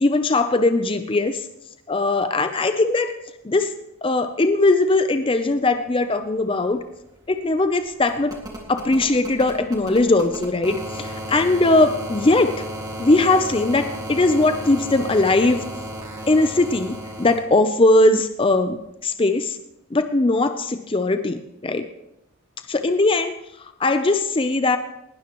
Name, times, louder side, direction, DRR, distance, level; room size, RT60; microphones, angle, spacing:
voice 1, 0.0-1.5 1.9-3.1 3.4-3.7 4.0-6.8 7.3-8.4 8.7-12.6 13.0-15.6 16.3-19.6 19.9-21.9 22.7-23.3 23.6-24.8, left 2 dB, 25° left, 9 dB, 0.5 m, -20 dB
sound 1, 6.2-6.3 6.5-17.4 18.8-18.9, equal, 15° right, 2.0 m, -34 dB
19.5 x 12.0 x 3.0 m, 0.82 s
head